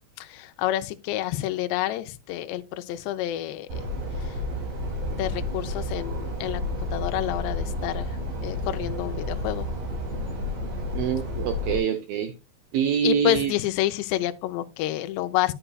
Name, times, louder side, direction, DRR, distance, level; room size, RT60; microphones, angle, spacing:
voice 1, 0.2-3.8 5.2-6.6 6.9-8.1 8.4-9.7 13.0-15.5, left 14 dB, 80° left, 2.7 m, -28 dB
sound 1, 3.7-11.8, left 1 dB, 45° right, 3.7 m, -31 dB
voice 2, 10.9-12.3 12.7-13.5, right 8 dB, 90° right, 2.1 m, -25 dB
10.0 x 8.9 x 2.3 m
omnidirectional pair, 5.2 m